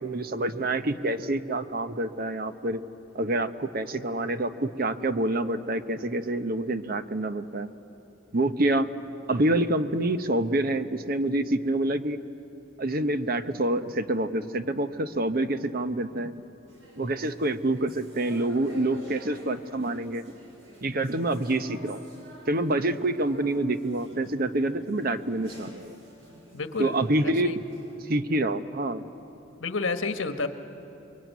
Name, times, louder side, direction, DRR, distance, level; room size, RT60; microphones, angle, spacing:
voice 1, 0.0-2.8 3.1-7.7 8.3-8.9 9.3-12.2 12.8-16.3 16.9-20.2 20.8-22.0 22.5-26.0 26.8-27.6 28.1-29.0, right 1 dB, 50° right, 11 dB, 0.9 m, -27 dB
sound 1, 16.7-27.9, equal, 75° right, 7.0 m, -50 dB
voice 2, 26.5-27.0 27.2-27.6 29.6-30.5, left 3 dB, 75° left, 8 dB, 1.5 m, -30 dB
28.5 x 22.5 x 9.3 m, 2.9 s
head